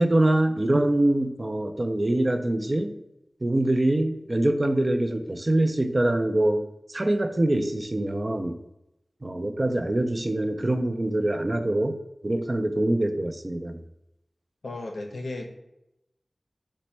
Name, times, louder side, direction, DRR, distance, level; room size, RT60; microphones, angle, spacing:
voice 1, 0.0-2.9 3.4-6.6 6.9-8.6 9.2-12.0 12.2-13.8, right 1 dB, 35° right, 8 dB, 0.3 m, -24 dB
voice 2, 14.6-15.5, left 2 dB, 90° left, 4 dB, 0.5 m, -34 dB
4.1 x 2.1 x 4.3 m, 0.89 s
wide cardioid pair, 75°, 0 cm